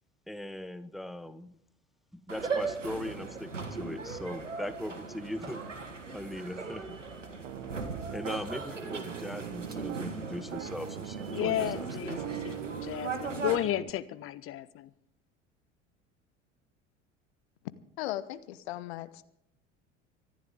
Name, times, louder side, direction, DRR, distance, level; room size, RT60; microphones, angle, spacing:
voice 1, 0.3-1.5 2.3-5.6 6.1-7.0 8.1-12.2, left 1 dB, ahead, 0.9 m, -39 dB
sound 1, 2.3-13.6, right 4 dB, 85° right, 1.8 m, -38 dB
Piano, 7.4-8.4 8.9-10.1 10.5-13.9, right 18 dB, 45° right, 0.7 m, -42 dB
voice 2, 11.3-14.9, left 13 dB, 35° left, 0.9 m, -33 dB
voice 3, 18.0-19.2, left 14 dB, 60° left, 1.1 m, -37 dB
25.0 x 11.0 x 3.7 m
figure-of-eight pair, 65°, 36 cm